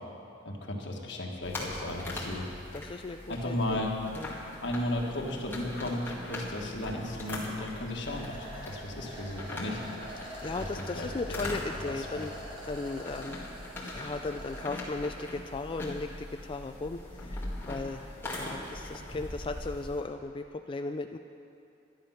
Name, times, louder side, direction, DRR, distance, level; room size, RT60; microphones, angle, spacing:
voice 1, 0.4-2.5 3.3-3.9 4.6-8.3 8.6-9.8 10.6-10.7 10.9-11.4 11.7-12.3, left 1 dB, 65° left, 0 dB, 1.6 m, -34 dB
sound 1, 1.4-20.0, left 1 dB, 10° left, 2.0 m, -41 dB
voice 2, 2.7-3.8 4.2-4.4 10.2-12.3 12.6-13.5 13.9-21.2, left 3 dB, 25° left, 6 dB, 0.3 m, -37 dB
sound 2, 4.3-4.8 5.1-5.4 5.8-5.9 6.2-8.6 8.9-9.3 9.6-10.0 10.4-10.9, right 1 dB, 75° right, 3.4 m, -56 dB
sound 3, 8.0-14.6, right 1 dB, 30° right, 2.5 m, -46 dB
12.0 x 10.5 x 5.7 m, 2.6 s
head